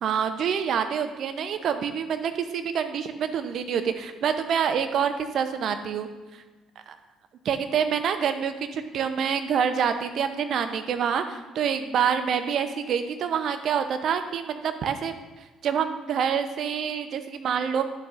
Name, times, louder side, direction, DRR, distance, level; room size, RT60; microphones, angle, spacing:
voice 1, 0.0-6.1 6.9-7.0 7.4-15.2 15.6-17.9, right 7 dB, 55° right, 9 dB, 0.6 m, -26 dB
10.5 x 6.9 x 2.5 m, 1.2 s
figure-of-eight pair, 50°, 0 cm